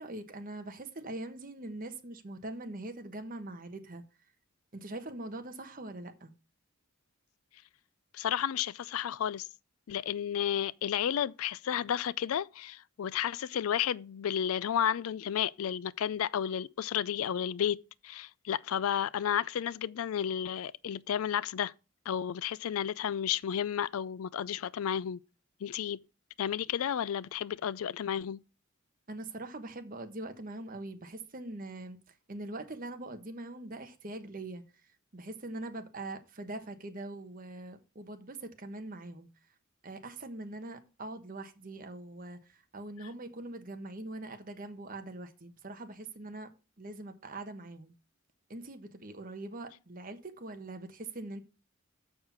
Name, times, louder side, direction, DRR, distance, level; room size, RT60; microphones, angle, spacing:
voice 1, 0.0-4.0 4.7-6.3 29.1-39.3 39.8-46.5 46.8-47.9 48.5-51.4, right 2 dB, 40° right, 1.2 m, -42 dB
voice 2, 8.1-9.5 9.9-17.8 18.0-21.7 22.1-25.2 25.6-26.0 26.4-28.4, left 9 dB, 80° left, 0.4 m, -32 dB
7.2 x 6.5 x 5.9 m
head